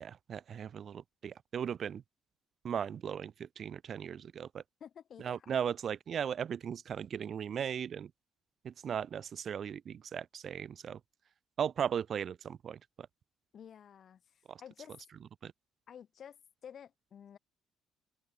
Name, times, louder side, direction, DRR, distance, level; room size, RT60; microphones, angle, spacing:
voice 1, 0.0-2.0 2.6-4.6 5.2-8.1 8.6-11.0 11.6-13.1 14.5-14.6 15.4-15.5, right 8 dB, 50° right, 2.2 m, -37 dB
voice 2, 4.8-5.5 13.5-15.0 15.9-16.4 16.6-17.4, left 8 dB, 50° left, 4.7 m, -51 dB
open air
cardioid pair, 105°, 0 cm